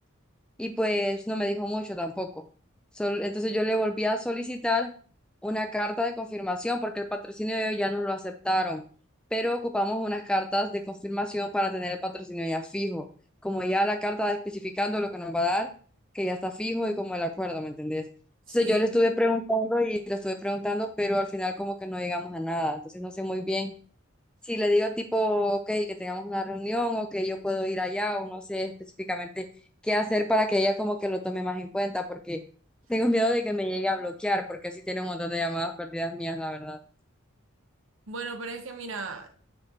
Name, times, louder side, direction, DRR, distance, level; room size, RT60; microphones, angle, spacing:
voice 1, 0.6-2.4 3.0-4.9 5.4-8.8 9.3-13.1 13.4-15.7 16.1-18.0 18.5-23.7 24.4-28.7 29.1-29.5 29.8-32.4 32.9-36.8, left 1 dB, 5° left, 5 dB, 0.4 m, -28 dB
voice 2, 18.5-18.9 38.1-39.4, right 4 dB, 75° right, 7 dB, 0.9 m, -36 dB
7.7 x 4.7 x 2.8 m, 0.43 s
head